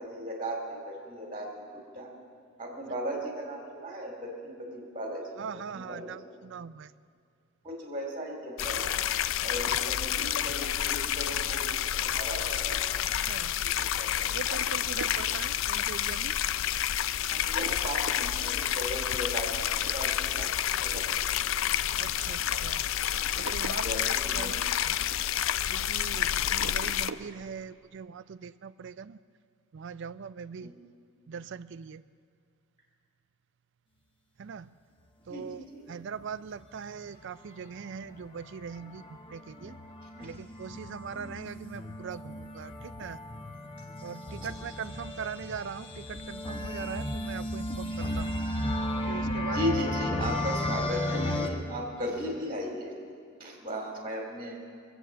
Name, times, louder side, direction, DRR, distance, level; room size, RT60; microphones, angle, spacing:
voice 1, 0.0-2.1 2.6-5.4 5.7-6.1 7.6-9.0 9.4-14.4 17.2-21.5 23.8-24.5 26.1-26.4 30.6-30.8 35.3-35.8 40.2-40.4 44.2-44.5 49.5-52.9 53.4-54.6, equal, 25° right, 0 dB, 2.4 m, -37 dB
voice 2, 5.4-6.9 13.0-13.5 14.3-16.4 22.0-22.9 23.4-25.0 25.7-29.2 29.7-30.7 31.3-32.0 34.4-34.7 35.3-39.8 40.2-43.2 44.0-48.3 49.1-49.6, right 6 dB, 60° right, 15 dB, 0.4 m, -41 dB
sound 1, 8.6-27.1, left 11 dB, 65° left, 0.4 m, -29 dB
sound 2, 12.5-16.3 16.8-17.0 17.4-26.0 26.4-27.4, right 4 dB, 80° right, 0.7 m, -46 dB
sound 3, 37.8-51.5, left 1 dB, 25° left, 0.9 m, -34 dB
23.0 x 8.1 x 7.4 m, 2.3 s
head